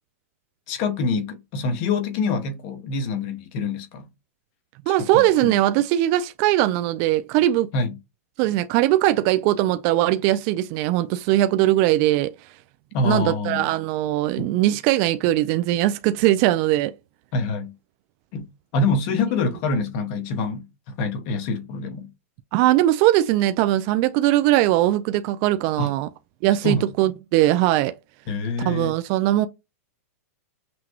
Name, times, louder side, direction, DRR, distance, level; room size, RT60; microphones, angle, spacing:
voice 1, 0.7-4.1 5.0-5.6 7.7-7.9 12.9-13.6 14.4-14.5 17.3-17.7 18.3-18.5 18.7-22.1 25.8-26.0 26.6-26.9 28.3-28.9, left 3 dB, 45° left, 1.1 m, -26 dB
voice 2, 4.9-7.7 8.4-12.3 13.0-16.9 22.5-26.1 26.4-27.9 28.6-29.5, right 14 dB, 40° right, 0.3 m, -20 dB
5.9 x 2.2 x 3.0 m
hypercardioid pair, 135°, 8 cm